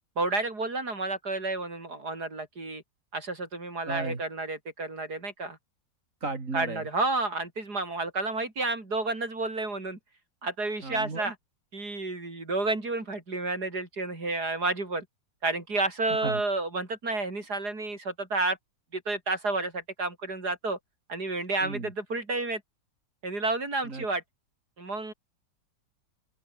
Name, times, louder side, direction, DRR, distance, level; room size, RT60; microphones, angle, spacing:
voice 1, 0.2-2.8 3.1-5.6 6.5-10.0 10.4-11.4 11.7-15.1 15.4-18.6 18.9-20.8 21.1-22.6 23.2-24.2 24.8-25.1, right 2 dB, 60° right, 5.5 m, -30 dB
voice 2, 3.8-4.2 6.2-6.9 10.8-11.3 16.2-16.4 21.6-21.9 23.8-24.1, right 3 dB, 45° right, 3.3 m, -34 dB
open air
omnidirectional pair, 1.9 m